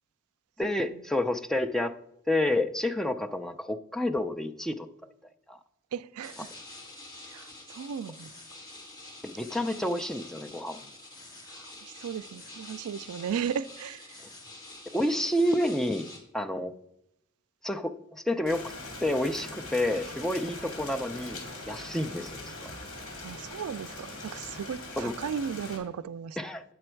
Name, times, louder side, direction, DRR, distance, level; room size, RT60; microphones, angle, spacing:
voice 1, 0.6-1.9 2.3-4.9 5.5-5.6 9.2-10.8 14.9-16.1 16.3-16.7 17.6-18.7 19.0-22.7 25.0-25.1 26.4-26.7, left 1 dB, ahead, 6 dB, 0.3 m, -29 dB
voice 2, 5.9-6.5 7.3-8.3 11.4-14.2 23.2-26.4, right 7 dB, 90° right, 17 dB, 0.3 m, -36 dB
sound 1, 6.2-16.2, left 2 dB, 20° left, 2.0 m, -47 dB
Rain, 18.5-25.8, left 2 dB, 65° left, 2.6 m, -41 dB
8.7 x 6.9 x 4.5 m, 0.83 s
head